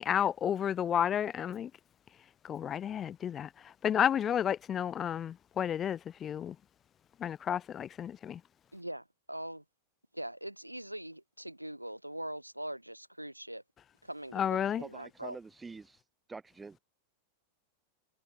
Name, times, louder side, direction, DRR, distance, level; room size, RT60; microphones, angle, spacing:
voice 1, 0.0-1.7 2.4-6.6 7.2-8.4 14.3-14.8, left 9 dB, 25° left, 0.6 m, -31 dB
voice 2, 8.7-9.6 10.1-13.6 14.0-15.4, right 1 dB, 90° right, 1.8 m, -42 dB
voice 3, 14.8-16.0 16.3-16.8, right 4 dB, 10° right, 4.2 m, -46 dB
figure-of-eight pair, 90°, 0 cm